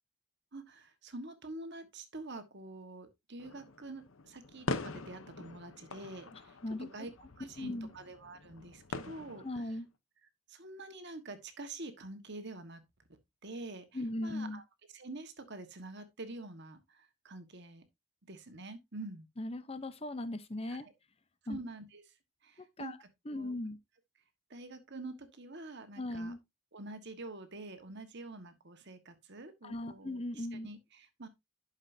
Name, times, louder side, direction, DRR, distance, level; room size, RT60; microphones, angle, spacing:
voice 1, 0.5-7.1 7.4-9.7 10.5-12.8 13.1-14.6 14.9-17.8 18.3-19.3 20.7-20.9 21.5-22.0 22.4-23.5 24.5-26.3 26.7-31.3, right 2 dB, 50° right, 1.4 m, -47 dB
sound 1, 3.4-9.8, left 3 dB, 60° left, 0.8 m, -43 dB
voice 2, 6.3-6.9 7.6-7.9 9.4-9.9 13.9-14.6 19.4-20.8 21.5-21.6 22.8-23.0 23.3-23.8 26.0-26.4 29.6-30.7, left 1 dB, 25° left, 0.7 m, -38 dB
11.5 x 6.5 x 2.7 m
head